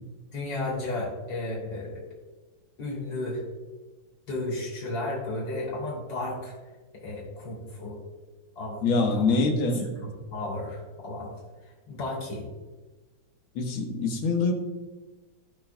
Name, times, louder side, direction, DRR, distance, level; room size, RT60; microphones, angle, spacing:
voice 1, 0.3-2.0 2.8-3.4 4.3-6.6 6.9-8.0 8.6-9.6 10.0-11.3 11.6-12.4, left 2 dB, 60° left, -4 dB, 3.6 m, -34 dB
voice 2, 8.8-9.9 13.6-14.5, left 3 dB, 90° left, 3 dB, 2.0 m, -24 dB
17.5 x 6.3 x 2.3 m, 1.2 s
omnidirectional pair, 2.2 m